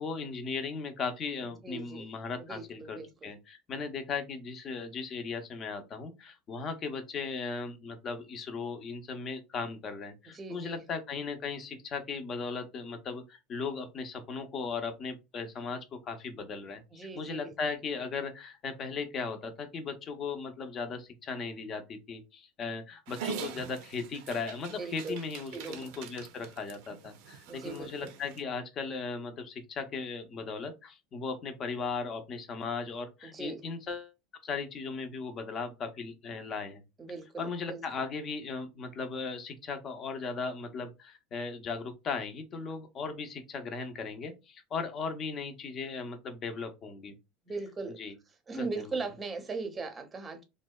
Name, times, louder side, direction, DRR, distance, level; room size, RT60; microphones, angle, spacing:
voice 1, 0.0-34.1 34.4-36.8 37.4-47.1 48.0-48.1, left 4 dB, 40° left, 0.6 m, -37 dB
voice 2, 1.4-2.1 2.4-3.3 10.3-10.9 16.9-17.5 24.7-25.2 25.5-25.8 27.5-28.1 33.2-33.6 37.0-37.8 47.5-48.0 48.5-50.4, right 3 dB, 20° right, 0.6 m, -39 dB
Dog, 23.1-28.4, right 7 dB, 75° right, 0.5 m, -43 dB
2.6 x 2.1 x 2.2 m
supercardioid pair, 115°, 0 cm